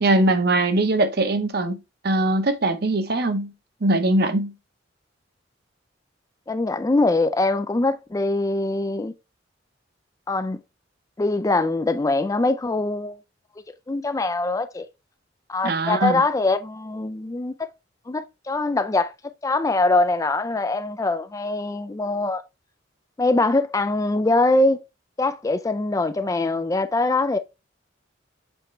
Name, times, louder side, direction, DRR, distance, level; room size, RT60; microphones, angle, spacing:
voice 1, 0.0-1.8 2.0-3.5 3.8-4.5 15.6-16.2, right 2 dB, 55° right, 0.8 m, -21 dB
voice 2, 6.5-9.1 10.3-10.6 11.2-13.2 13.9-14.9 15.5-17.7 18.1-19.1 19.4-22.4 23.2-24.8 25.2-27.4, left 2 dB, 15° left, 0.3 m, -23 dB
7.1 x 4.3 x 3.2 m
head